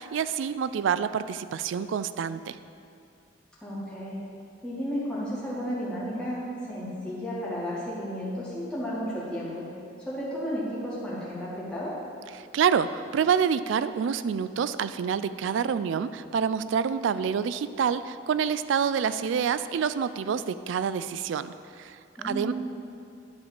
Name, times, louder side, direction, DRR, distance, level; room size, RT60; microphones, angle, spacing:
voice 1, 0.0-2.6 12.3-22.0 22.2-22.5, right 7 dB, 75° right, 14 dB, 0.3 m, -27 dB
voice 2, 3.6-4.2 4.6-9.7 10.0-11.9 22.2-22.5, equal, 5° left, -9 dB, 2.0 m, -33 dB
10.5 x 4.0 x 6.9 m, 2.5 s
head